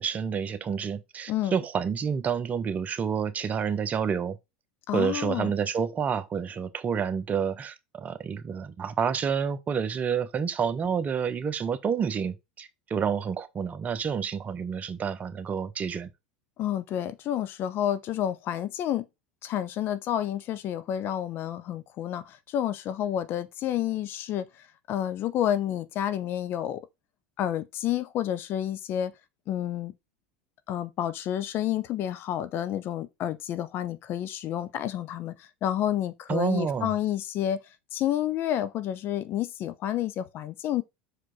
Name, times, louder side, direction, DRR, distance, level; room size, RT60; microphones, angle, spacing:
voice 1, 0.0-4.4 4.9-16.1 36.3-36.9, right 7 dB, 30° right, 1.1 m, -29 dB
voice 2, 4.9-5.5 16.6-19.0 19.4-26.8 27.4-29.1 29.5-29.9 30.7-37.6 37.9-40.8, left 11 dB, 45° left, 0.8 m, -30 dB
6.1 x 4.9 x 3.8 m
hypercardioid pair, 80°, 5 cm